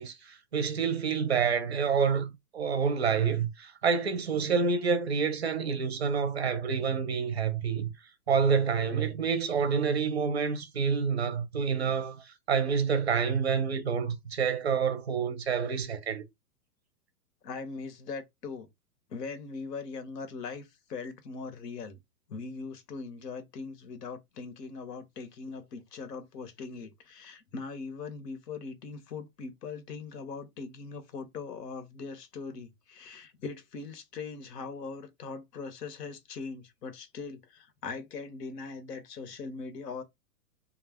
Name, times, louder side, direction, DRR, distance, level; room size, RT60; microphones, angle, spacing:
voice 1, 0.0-7.9 8.3-16.2, right 6 dB, 45° right, 0.4 m, -28 dB
voice 2, 17.4-18.7 19.1-22.0 22.3-40.0, left 4 dB, 90° left, 1.0 m, -40 dB
2.4 x 2.1 x 3.4 m
hypercardioid pair, 175°, 47 cm